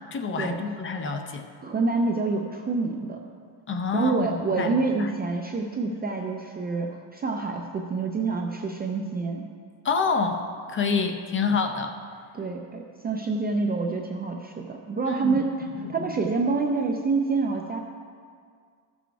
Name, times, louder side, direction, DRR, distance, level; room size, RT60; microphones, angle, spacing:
voice 1, 0.1-1.5 3.7-4.7 5.0-5.1 5.9-6.1 9.8-10.4 10.7-12.0 15.2-15.4 15.8-16.1, left 5 dB, 25° left, 5 dB, 0.6 m, -27 dB
voice 2, 1.6-3.2 3.9-9.4 12.3-17.8, right 4 dB, 20° right, 2 dB, 0.4 m, -27 dB
14.0 x 6.2 x 4.6 m, 2.1 s
cardioid pair, 150°, 48 cm